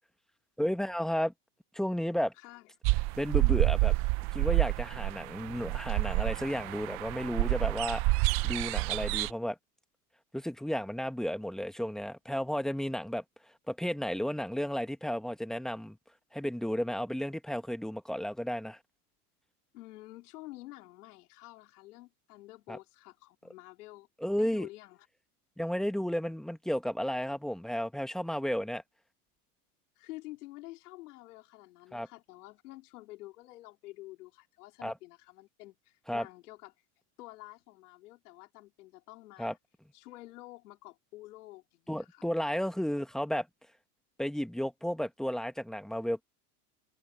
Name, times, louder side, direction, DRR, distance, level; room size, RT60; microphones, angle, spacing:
voice 1, 0.6-1.3 1.7-2.3 3.2-3.9 4.3-9.6 10.3-13.2 13.7-16.0 16.3-18.8 22.7-22.8 24.2-24.7 25.6-28.8 31.9-32.1 34.8-34.9 36.1-36.3 39.4-39.5 41.9-43.5 44.2-46.2, equal, ahead, 1.0 m, -33 dB
voice 2, 2.3-2.7 19.7-24.1 24.4-25.1 30.0-36.8 37.2-39.6 39.9-42.3, left 18 dB, 80° left, 4.0 m, -49 dB
sound 1, 2.8-9.3, right 21 dB, 30° right, 0.4 m, -28 dB
supercardioid pair, 150°, 46 cm